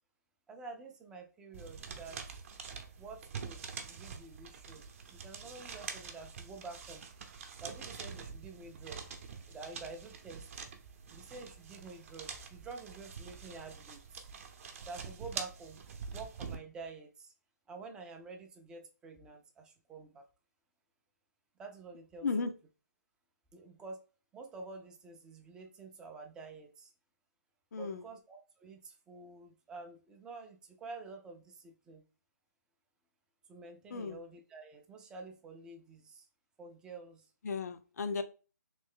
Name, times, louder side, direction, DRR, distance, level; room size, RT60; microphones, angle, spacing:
voice 1, 0.5-2.4 3.0-4.8 5.1-7.0 7.6-9.1 9.5-10.5 11.1-14.3 14.8-15.8 16.1-17.3 17.7-20.3 21.6-22.3 23.5-24.0 24.3-26.9 27.8-32.0 33.5-36.3 36.6-37.3, right 3 dB, 10° right, 3 dB, 0.4 m, -49 dB
sound 1, 1.5-16.6, right 6 dB, 45° right, 0.7 m, -46 dB
voice 2, 27.7-28.0 33.9-34.2 37.4-38.2, left 4 dB, 65° left, 9 dB, 0.6 m, -35 dB
3.2 x 3.0 x 3.6 m, 0.34 s
hypercardioid pair, 155°, 10 cm